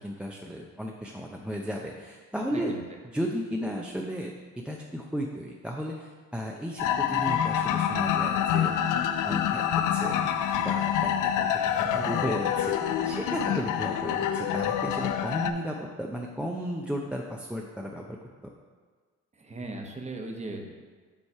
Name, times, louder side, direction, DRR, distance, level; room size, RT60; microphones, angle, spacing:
voice 1, 0.0-2.7 3.1-4.3 4.6-8.9 9.2-9.6 9.9-11.5 11.9-18.2, equal, 5° right, -1 dB, 0.5 m, -34 dB
voice 2, 2.5-3.0 11.6-12.1 19.3-20.7, right 2 dB, 20° right, 2 dB, 1.0 m, -38 dB
sound 1, 6.8-15.5, left 9 dB, 85° left, 0.5 m, -27 dB
7.2 x 3.2 x 5.5 m, 1.5 s
cardioid pair, 90°, 30 cm